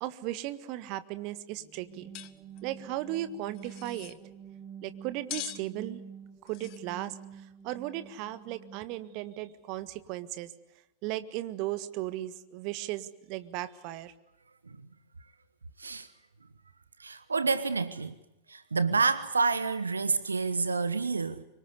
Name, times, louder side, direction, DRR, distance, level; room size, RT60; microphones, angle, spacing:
voice 1, 0.0-2.1 2.6-4.2 4.8-6.0 6.4-7.2 7.6-10.5 11.0-14.1, right 14 dB, 45° right, 1.6 m, -36 dB
sound 1, 1.5-9.3, right 8 dB, 20° right, 3.9 m, -48 dB
sound 2, 2.1-2.3 2.6-2.7 3.5-4.2 5.3-5.6 6.5-6.8, left 16 dB, 40° left, 1.1 m, -41 dB
voice 2, 15.8-16.1 17.0-18.2 18.5-21.4, right 4 dB, 75° right, 1.1 m, -28 dB
25.5 x 24.0 x 8.2 m
figure-of-eight pair, 90°, 0 cm